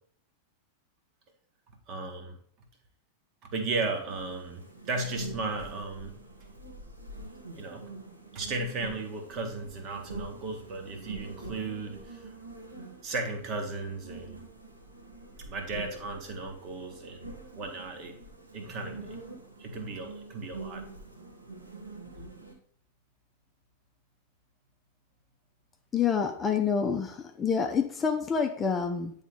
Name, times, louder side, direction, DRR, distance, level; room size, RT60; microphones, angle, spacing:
voice 1, 1.9-2.4 3.4-6.1 7.5-7.9 8.3-12.3 13.0-14.4 15.4-18.2 18.5-19.2 19.6-20.8, right 3 dB, 40° right, 5 dB, 1.3 m, -35 dB
sound 1, 4.1-22.5, right 3 dB, 80° right, 1.4 m, -45 dB
voice 2, 25.9-29.1, left 6 dB, 20° left, 5 dB, 0.7 m, -27 dB
9.2 x 3.5 x 3.9 m, 0.62 s
figure-of-eight pair, 90°, 0 cm